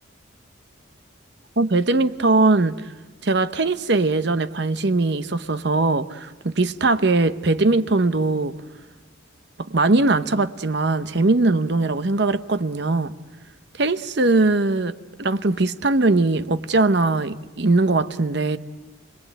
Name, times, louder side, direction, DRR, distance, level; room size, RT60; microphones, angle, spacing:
voice 1, 1.6-2.8 3.2-8.5 9.6-13.1 13.8-14.9 15.2-18.6, right 2 dB, 55° right, 0.9 m, -20 dB
29.0 x 21.0 x 9.2 m
head